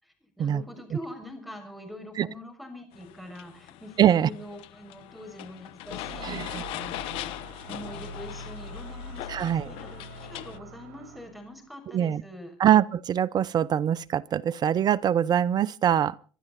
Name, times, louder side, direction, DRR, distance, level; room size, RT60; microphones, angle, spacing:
voice 1, 0.0-7.3 7.7-12.5, left 1 dB, ahead, 6.4 m, -44 dB
sound 1, 2.9-10.6, left 15 dB, 70° left, 1.0 m, -40 dB
voice 2, 4.0-4.3 6.2-6.6 9.3-9.7 11.9-12.2 12.6-16.1, right 10 dB, 45° right, 0.7 m, -23 dB
sound 2, 5.8-11.6, right 2 dB, 80° right, 2.8 m, -44 dB
26.0 x 12.5 x 4.2 m
hypercardioid pair, 75°, 9 cm